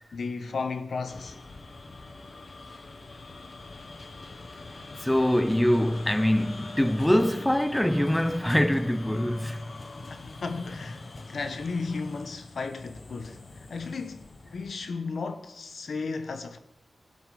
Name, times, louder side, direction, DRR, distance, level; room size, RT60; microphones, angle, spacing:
voice 1, 0.1-1.4 10.1-16.6, left 4 dB, 70° left, 1.0 m, -34 dB
sound 1, 1.1-14.9, left 2 dB, 45° left, 1.2 m, -43 dB
voice 2, 5.0-9.7 11.1-11.2, left 1 dB, 5° left, 0.5 m, -24 dB
17.0 x 7.8 x 4.9 m
wide cardioid pair, 115°, 0 cm